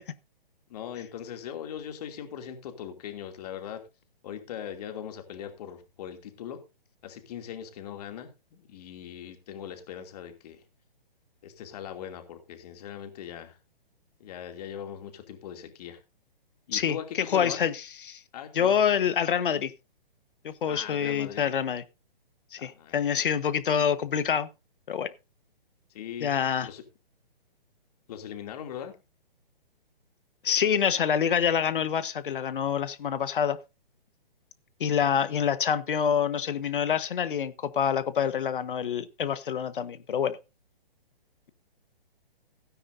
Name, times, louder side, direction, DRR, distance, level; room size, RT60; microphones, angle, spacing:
voice 1, 0.7-3.8 4.2-6.6 7.0-10.6 11.4-13.6 14.2-16.0 16.7-17.7 18.3-18.7 20.7-21.4 22.6-23.4 25.9-26.4 26.6-26.8 28.1-28.9, left 9 dB, 40° left, 2.7 m, -40 dB
voice 2, 17.3-18.2 18.5-19.7 20.4-21.8 22.5-24.5 24.9-25.1 26.2-26.7 30.4-33.6 34.8-40.4, left 8 dB, 60° left, 1.3 m, -26 dB
17.0 x 10.0 x 2.7 m
hypercardioid pair, 140°, 29 cm